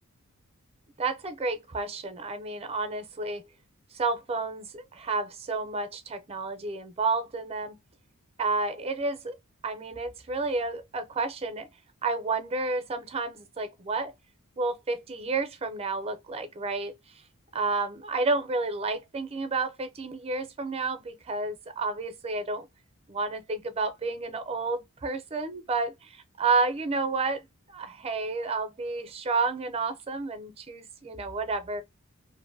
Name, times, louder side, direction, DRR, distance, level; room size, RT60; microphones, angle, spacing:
voice 1, 1.0-3.4 3.9-7.8 8.4-9.4 9.6-11.7 12.0-14.1 14.6-16.9 17.5-22.7 23.1-31.8, right 3 dB, 25° right, 0.5 m, -30 dB
2.6 x 2.5 x 2.6 m
head